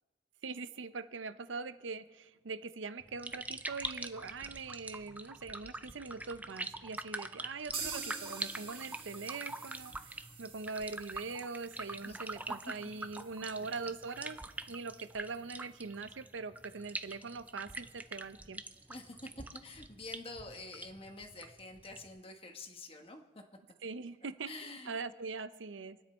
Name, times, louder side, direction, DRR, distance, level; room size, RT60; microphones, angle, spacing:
voice 1, 0.4-14.4 14.7-18.6 23.8-24.5 24.8-26.0, right 4 dB, 85° right, 13 dB, 0.7 m, -42 dB
sound 1, 3.0-22.2, right 2 dB, 10° right, 0.4 m, -45 dB
sound 2, 7.7-15.5 15.8-15.9 16.2-16.3 16.7-16.8, right 5 dB, 30° right, 1.8 m, -48 dB
voice 2, 18.9-23.4 24.5-24.9, left 2 dB, 30° left, 4 dB, 1.3 m, -47 dB
26.5 x 10.0 x 4.4 m, 1.3 s
head